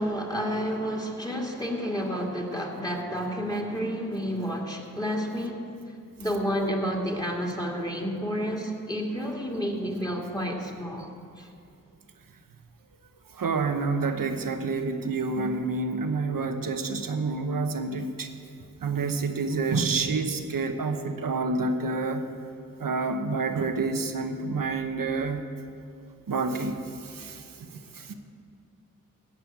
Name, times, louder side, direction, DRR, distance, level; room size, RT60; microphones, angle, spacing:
voice 1, 0.0-5.6 6.2-11.1 11.4-11.5, equal, 10° left, 0 dB, 2.3 m, -30 dB
voice 2, 13.4-18.3 18.8-22.2 22.8-25.4 26.3-26.8 27.1-27.7 28.0-28.1, right 3 dB, 70° right, 7 dB, 1.2 m, -28 dB
15.5 x 5.7 x 8.8 m, 2.3 s
cardioid pair, 40°, 35 cm